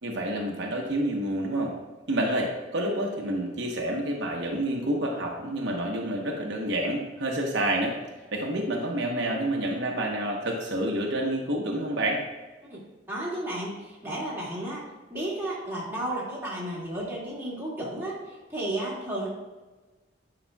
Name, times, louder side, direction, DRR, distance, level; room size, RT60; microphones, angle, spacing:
voice 1, 0.0-1.7 2.1-8.0 8.3-12.2, right 1 dB, 75° right, 0 dB, 0.9 m, -28 dB
voice 2, 13.1-19.3, right 1 dB, 10° right, -7 dB, 2.0 m, -33 dB
9.8 x 5.1 x 2.3 m, 1.2 s
head